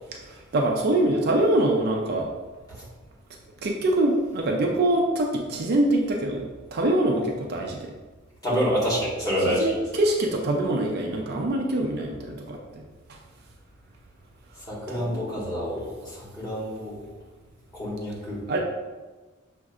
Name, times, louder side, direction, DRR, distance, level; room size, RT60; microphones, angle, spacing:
voice 1, 0.1-2.3 3.6-7.8 8.5-8.7 9.4-12.8 14.9-15.4 18.5-18.6, right 1 dB, 50° right, 1 dB, 0.4 m, -24 dB
voice 2, 8.4-9.6 14.7-15.9 16.1-17.0 17.8-18.4, equal, 20° left, -8 dB, 1.4 m, -27 dB
6.1 x 2.5 x 2.4 m, 1.2 s
head